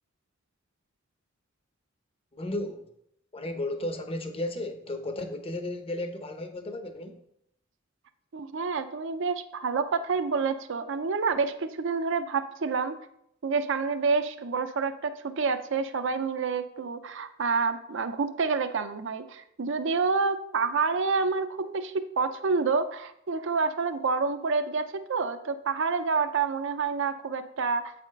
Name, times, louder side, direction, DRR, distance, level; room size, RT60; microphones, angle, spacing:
voice 1, 2.3-2.9 3.3-7.2, left 1 dB, 30° left, 0.8 m, -34 dB
voice 2, 8.3-13.0 13.4-27.9, right 4 dB, 65° right, 0.5 m, -28 dB
8.0 x 4.2 x 5.2 m
head